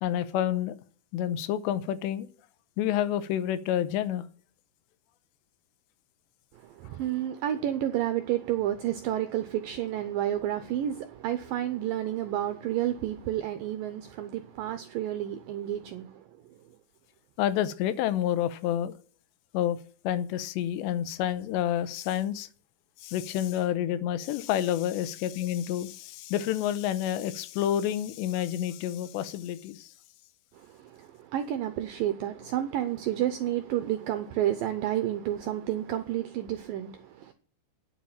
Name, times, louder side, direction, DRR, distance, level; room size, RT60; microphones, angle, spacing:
voice 1, 0.0-0.8 1.1-2.3 2.8-4.3 17.4-18.9 19.5-19.8 20.0-22.5 23.0-29.9, left 11 dB, 85° left, 3.0 m, -29 dB
voice 2, 6.6-16.2 30.5-37.3, right 12 dB, 85° right, 2.0 m, -30 dB
9.5 x 7.3 x 8.8 m
omnidirectional pair, 4.9 m